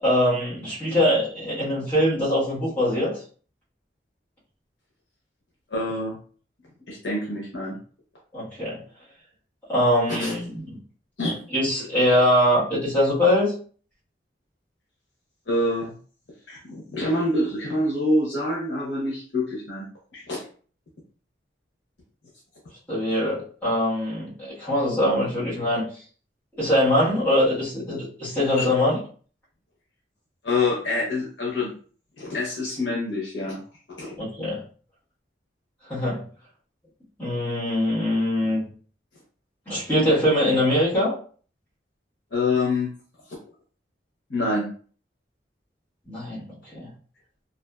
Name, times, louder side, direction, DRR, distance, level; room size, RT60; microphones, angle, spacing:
voice 1, 0.0-3.2 8.3-8.8 9.7-10.7 11.5-13.5 22.9-25.8 26.6-29.0 34.2-34.6 35.9-36.2 37.2-38.6 39.7-41.1 46.1-46.9, left 1 dB, 10° left, -11 dB, 1.2 m, -22 dB
voice 2, 5.7-6.2 6.9-7.8 10.1-10.3 11.2-11.4 15.5-15.9 16.5-19.9 20.1-20.4 28.6-28.7 30.4-31.7 32.2-33.6 33.9-34.2 42.3-42.9 44.3-44.7, left 2 dB, 90° left, -3 dB, 0.8 m, -26 dB
2.7 x 2.5 x 2.3 m, 0.43 s
head